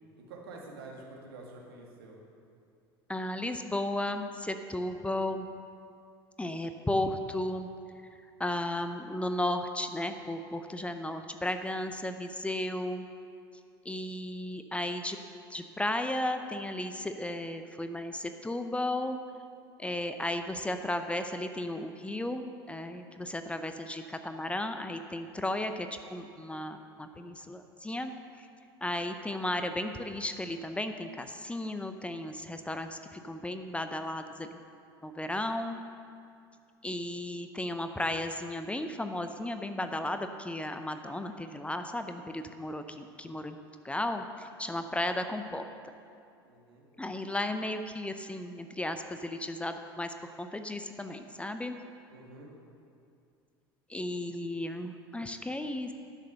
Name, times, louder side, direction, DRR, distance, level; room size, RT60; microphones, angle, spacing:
voice 1, 0.2-2.2 46.4-46.9 52.1-52.5, right 3 dB, 75° right, -1 dB, 2.0 m, -48 dB
voice 2, 3.1-5.5 6.4-7.7 8.4-13.1 13.8-15.2 15.5-19.2 19.8-28.1 28.4-28.5 28.8-34.6 35.0-35.8 36.8-43.6 43.8-45.7 47.0-51.8 53.9-55.9, left 1 dB, 10° left, 8 dB, 0.6 m, -34 dB
11.5 x 6.7 x 6.7 m, 2.5 s
hypercardioid pair, 75°, 13 cm